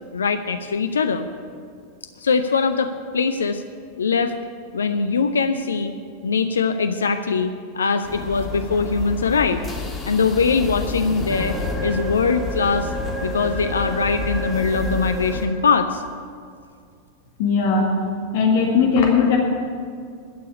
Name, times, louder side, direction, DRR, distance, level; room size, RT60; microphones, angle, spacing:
voice 1, 0.1-1.3 2.2-3.6 4.0-4.3 4.7-5.9 6.2-9.6 10.1-12.9 13.2-16.0, left 5 dB, 70° left, 8 dB, 0.5 m, -22 dB
sound 1, 8.0-15.5, left 2 dB, 20° left, 1.8 m, -29 dB
voice 2, 17.4-17.9 18.3-19.4, left 5 dB, 50° left, 0 dB, 1.9 m, -18 dB
12.0 x 6.9 x 9.7 m, 2.3 s
figure-of-eight pair, 90°, 0 cm